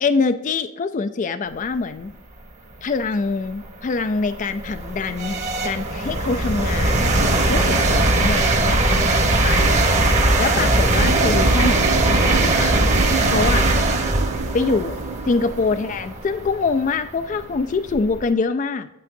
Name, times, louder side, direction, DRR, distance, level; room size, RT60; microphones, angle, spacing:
voice 1, 0.0-2.1 2.8-7.1 7.5-8.8 9.4-9.8 10.4-12.8 13.3-13.7 14.5-15.0 15.3-18.9, left 4 dB, 35° left, 10 dB, 0.3 m, -24 dB
sound 1, 2.8-2.9 3.5-18.3, right 2 dB, 30° right, 1.1 m, -20 dB
sound 2, 10.9-16.0, right 7 dB, 80° right, 0.3 m, -29 dB
8.7 x 8.4 x 2.6 m, 0.93 s
head